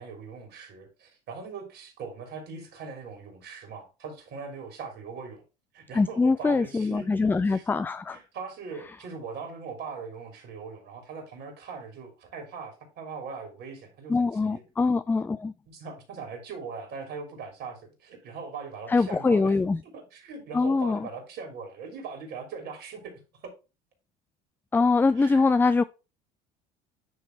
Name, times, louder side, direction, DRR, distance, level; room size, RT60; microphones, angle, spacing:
voice 1, 0.0-5.4 5.7-7.1 7.5-7.8 8.1-14.6 15.7-19.5 19.9-23.5 25.2-25.5, right 5 dB, 60° right, 3.2 m, -40 dB
voice 2, 5.9-8.2 14.1-15.5 18.9-19.8 20.5-21.0 24.7-25.8, left 4 dB, 10° left, 0.3 m, -23 dB
9.7 x 3.3 x 4.5 m
hypercardioid pair, 75°, 19 cm